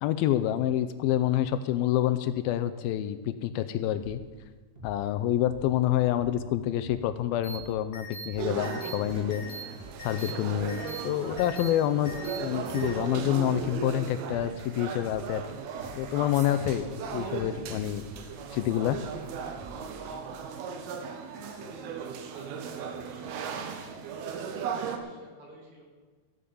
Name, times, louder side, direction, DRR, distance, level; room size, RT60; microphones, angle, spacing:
voice 1, 0.0-4.2 4.8-9.5 10.0-12.1 12.4-15.4 16.0-18.1 18.5-19.0, left 12 dB, 80° left, 11 dB, 2.4 m, -27 dB
sound 1, 3.9-4.3 4.8-5.1 5.5-5.7 6.1-6.4 6.8-7.1 7.5-7.8 8.2-8.6 9.0-9.3 9.7-10.1 10.5-10.8 11.3-11.6 12.0-12.3 12.8-13.1 13.5-13.8 14.3-14.6 15.0-15.3 15.8-20.2, right 2 dB, 35° right, 0.9 m, -48 dB
sound 2, 7.4-7.6 7.9-8.3 8.6-8.9 9.3-9.6 10.0-10.3 10.7-11.0 11.4-11.7 12.1-12.4 12.7-12.9, equal, 45° left, 3.1 m, -41 dB
sound 3, 8.4-25.0, right 6 dB, 85° right, 3.1 m, -37 dB
voice 2, 21.3-25.9, right 2 dB, 50° right, 0 dB, 3.5 m, -50 dB
14.5 x 8.8 x 7.0 m, 1.4 s
omnidirectional pair, 4.4 m